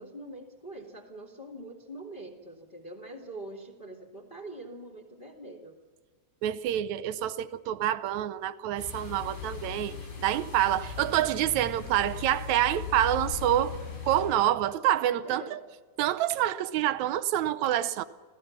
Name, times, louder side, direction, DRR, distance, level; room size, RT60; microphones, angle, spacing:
voice 1, 0.0-5.8 15.0-15.6, right 1 dB, 20° left, 2.0 m, -44 dB
voice 2, 6.4-13.7 14.1-15.6 16.0-18.0, right 12 dB, 75° right, 1.9 m, -27 dB
sound 1, 8.8-14.3, left 6 dB, 85° left, 5.6 m, -39 dB
27.0 x 16.5 x 7.3 m
omnidirectional pair, 3.6 m